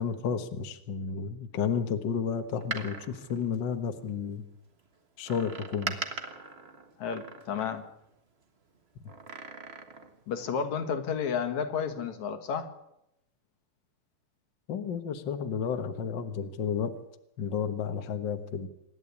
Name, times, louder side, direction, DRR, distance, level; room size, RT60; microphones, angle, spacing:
voice 1, 0.0-4.4 5.2-6.0 14.7-17.0 17.4-18.7, left 7 dB, 50° left, 8 dB, 1.5 m, -32 dB
Door, 2.5-4.3 5.3-8.1 9.1-10.2 10.5-10.6, right 4 dB, 35° right, 1.0 m, -41 dB
voice 2, 7.0-7.9 10.3-12.7, left 6 dB, 70° left, 7 dB, 2.9 m, -31 dB
26.5 x 12.0 x 8.4 m, 0.84 s
omnidirectional pair, 3.5 m